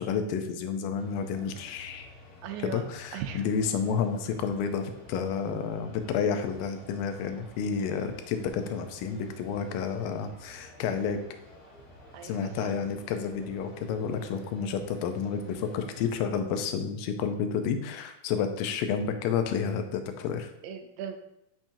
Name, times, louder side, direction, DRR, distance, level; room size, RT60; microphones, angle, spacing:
voice 1, 0.0-2.1 2.6-11.2 12.2-20.5, left 6 dB, 85° left, 7 dB, 2.4 m, -30 dB
sound 1, 0.9-16.2, left 2 dB, 50° left, 0.6 m, -51 dB
voice 2, 2.4-3.4 12.1-12.7 20.6-21.2, right 8 dB, 90° right, 7 dB, 2.4 m, -38 dB
7.3 x 5.8 x 2.7 m, 0.82 s
omnidirectional pair, 3.9 m